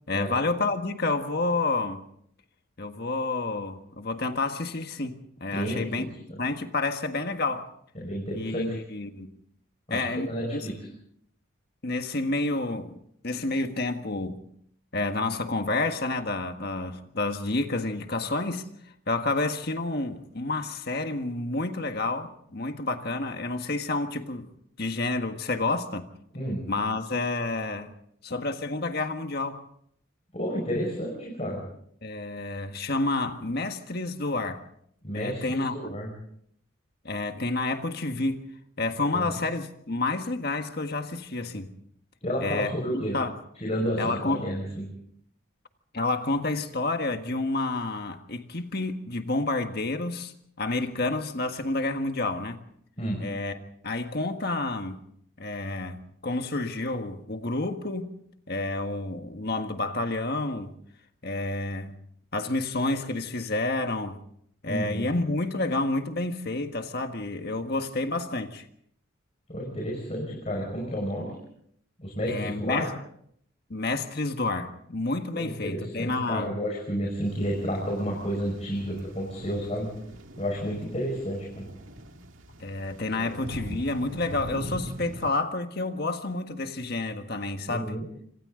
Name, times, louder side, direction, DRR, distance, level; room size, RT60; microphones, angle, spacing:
voice 1, 0.1-2.0 2.8-5.1 5.4-6.1 6.4-7.7 8.3-9.3 9.9-10.7 11.8-12.9 13.2-14.4 14.9-18.7 19.1-24.5 24.8-26.1 26.7-27.9 28.2-29.6 32.0-34.6 35.1-35.9 37.0-38.4 38.8-41.7 42.4-42.7 43.1-43.3 44.0-44.5 45.9-52.6 53.2-53.6 53.8-55.0 55.4-58.1 58.5-60.7 61.2-61.9 62.3-64.2 64.6-68.6 72.3-72.9 73.7-76.5 82.6-87.9, left 2 dB, 50° left, 1.6 m, -29 dB
voice 2, 5.5-6.4 8.0-8.8 9.9-10.7 26.3-26.6 30.3-31.6 35.0-36.1 39.0-39.3 42.2-43.1 43.6-44.9 53.0-53.2 64.7-65.1 69.5-71.4 72.0-72.9 75.4-79.9 80.4-81.7 83.1-83.4 87.7-88.0, equal, 30° left, 5.4 m, -31 dB
sound 1, 77.2-85.3, equal, 70° right, 2.1 m, -41 dB
26.5 x 26.0 x 3.9 m
head